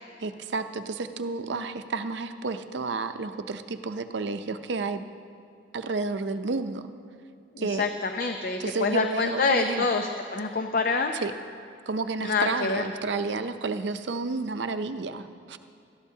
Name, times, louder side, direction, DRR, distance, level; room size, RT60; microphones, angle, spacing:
voice 1, 0.2-5.0 5.7-6.9 7.6-7.9 8.6-9.9 11.1-11.3 11.9-15.6, right 3 dB, 70° right, 10 dB, 0.6 m, -31 dB
voice 2, 8.1-11.2 12.2-12.8, left 4 dB, 50° left, 5 dB, 0.5 m, -26 dB
20.0 x 13.5 x 2.8 m, 2.4 s
head